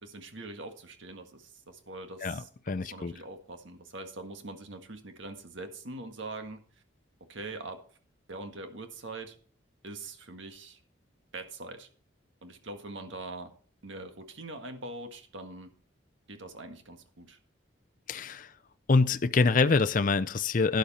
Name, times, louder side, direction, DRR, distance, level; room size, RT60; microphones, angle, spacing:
voice 1, 0.0-6.6 7.3-7.8 8.3-9.4 9.8-10.8 11.3-11.9 12.4-13.5 13.8-15.7 16.3-17.4, right 2 dB, 70° right, 1.8 m, -43 dB
voice 2, 2.2-3.1 18.1-18.5 18.9-20.8, left 4 dB, 40° left, 0.5 m, -25 dB
12.0 x 10.5 x 4.2 m
head